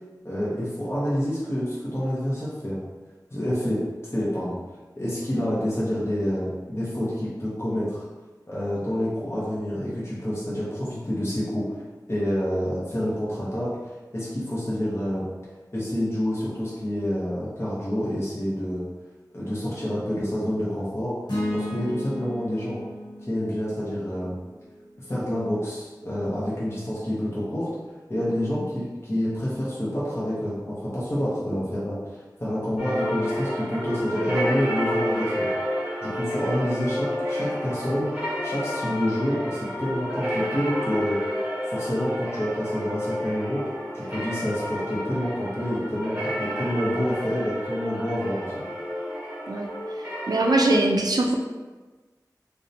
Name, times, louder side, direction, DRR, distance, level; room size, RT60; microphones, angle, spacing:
voice 1, 0.2-2.8 3.3-3.8 4.1-4.5 5.0-8.0 8.5-11.8 12.1-13.7 14.1-15.2 15.7-18.9 19.3-21.2 21.5-22.8 23.2-24.4 25.1-27.7 28.1-32.0 32.4-35.5 36.0-41.2 41.7-43.6 43.9-48.5, equal, 35° left, -8 dB, 0.7 m, -28 dB
sound 1, 21.3-25.6, left 1 dB, 80° left, 0.9 m, -34 dB
sound 2, 32.8-50.8, equal, 15° right, 1.3 m, -30 dB
voice 2, 50.3-51.4, right 2 dB, 65° right, 2 dB, 0.3 m, -21 dB
2.6 x 2.1 x 2.6 m, 1.2 s
wide cardioid pair, 40°, 7 cm